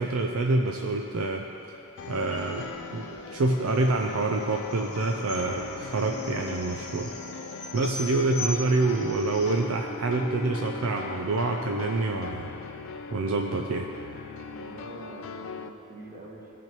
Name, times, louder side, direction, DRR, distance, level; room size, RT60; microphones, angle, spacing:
voice 1, 0.0-1.4 2.1-2.7 2.9-7.1 7.7-12.5 13.1-13.9, right 2 dB, 70° right, 2 dB, 0.5 m, -27 dB
sound 1, 2.0-9.5, left 2 dB, 85° left, 1.9 m, -41 dB
sound 2, 2.0-15.7, left 4 dB, 60° left, 0.4 m, -40 dB
voice 2, 14.4-16.5, right 1 dB, 35° right, -3 dB, 1.3 m, -45 dB
16.5 x 5.9 x 3.0 m, 3.0 s
head